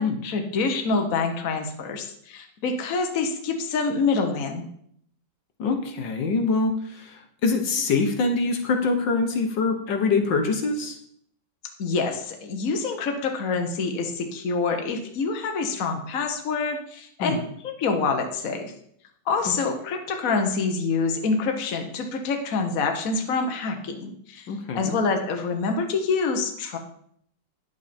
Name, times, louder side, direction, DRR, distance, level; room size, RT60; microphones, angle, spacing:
voice 1, 0.2-4.7 11.8-18.7 19.3-24.5 24.7-26.8, left 4 dB, 50° left, 4 dB, 1.3 m, -26 dB
voice 2, 5.6-11.0 17.2-17.4 19.4-19.5 24.5-25.0, left 3 dB, 65° left, 5 dB, 1.8 m, -24 dB
9.9 x 8.0 x 4.3 m, 0.68 s
omnidirectional pair, 2.2 m